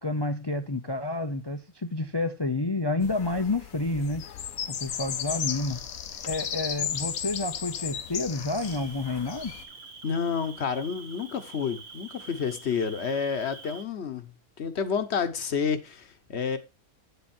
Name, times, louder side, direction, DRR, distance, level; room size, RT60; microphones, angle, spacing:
voice 1, 0.0-4.2 4.7-5.8 6.3-9.5, left 2 dB, 35° left, 0.4 m, -29 dB
sound 1, 3.0-9.6, left 8 dB, 75° left, 1.3 m, -35 dB
Cricket, 8.6-13.8, right 4 dB, 60° right, 1.5 m, -46 dB
voice 2, 10.0-14.3 14.6-16.6, left 6 dB, 55° left, 1.1 m, -29 dB
8.8 x 7.0 x 4.3 m
omnidirectional pair, 1.5 m